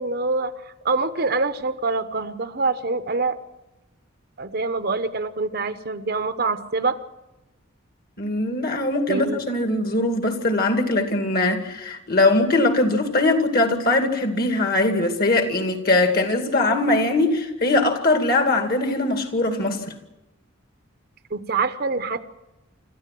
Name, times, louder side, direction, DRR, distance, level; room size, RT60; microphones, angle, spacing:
voice 1, 0.0-3.4 4.4-7.0 9.1-9.4 21.3-22.2, right 3 dB, 45° right, 0.9 m, -25 dB
voice 2, 8.2-19.8, left 2 dB, 45° left, 2.3 m, -21 dB
26.5 x 14.0 x 7.6 m
head